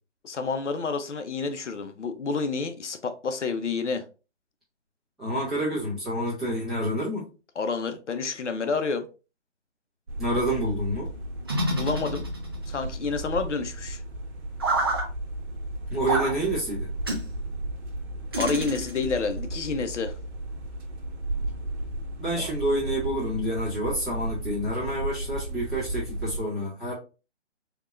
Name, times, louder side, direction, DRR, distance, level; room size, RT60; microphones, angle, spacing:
voice 1, 0.2-4.0 7.6-9.1 11.7-12.3 12.7-14.0 18.4-20.1 22.4-22.5, left 4 dB, 80° left, 0.7 m, -29 dB
voice 2, 5.2-7.3 10.2-11.1 15.9-16.9 22.2-26.9, right 1 dB, ahead, 1.0 m, -28 dB
sound 1, 10.1-26.4, right 1 dB, 65° right, 1.1 m, -34 dB
sound 2, 11.5-12.7 14.6-15.0 16.1-16.3 17.0-17.3 18.3-19.2, right 1 dB, 20° right, 0.5 m, -27 dB
3.6 x 2.9 x 2.4 m
figure-of-eight pair, 155°, 35 cm